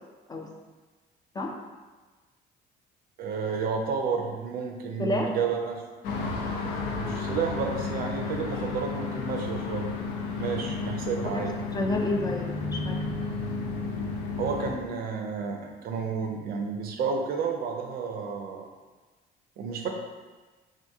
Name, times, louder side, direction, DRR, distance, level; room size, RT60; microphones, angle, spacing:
voice 1, 3.2-5.8 7.0-9.9 10.4-11.5 14.4-18.7 19.6-19.9, right 5 dB, 65° right, 3 dB, 0.5 m, -31 dB
voice 2, 5.0-5.4 11.3-11.5 11.7-13.0, left 1 dB, 25° left, 2 dB, 0.3 m, -30 dB
sound 1, 6.0-14.7, left 3 dB, 85° left, 0.5 m, -32 dB
2.8 x 2.5 x 3.4 m, 1.3 s
cardioid pair, 110°, 17 cm